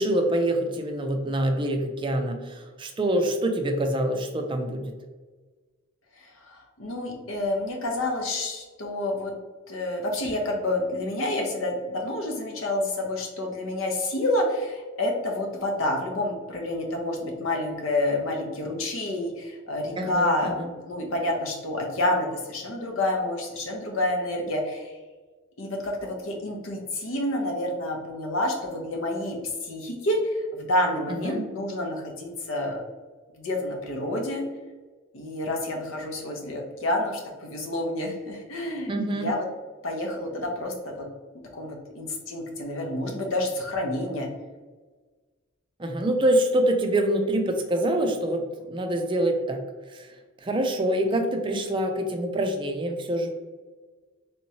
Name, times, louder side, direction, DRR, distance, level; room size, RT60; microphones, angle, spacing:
voice 1, 0.0-4.8 20.0-20.7 31.1-31.4 38.9-39.3 45.8-49.6 49.9-53.3, right 1 dB, 25° right, 4 dB, 0.4 m, -25 dB
voice 2, 6.2-9.3 9.7-20.6 20.9-24.9 25.6-29.4 29.6-32.8 33.4-34.4 35.1-39.4 39.8-41.0 41.5-44.3, left 1 dB, 75° left, 1 dB, 0.8 m, -28 dB
3.4 x 3.0 x 2.7 m, 1.3 s
head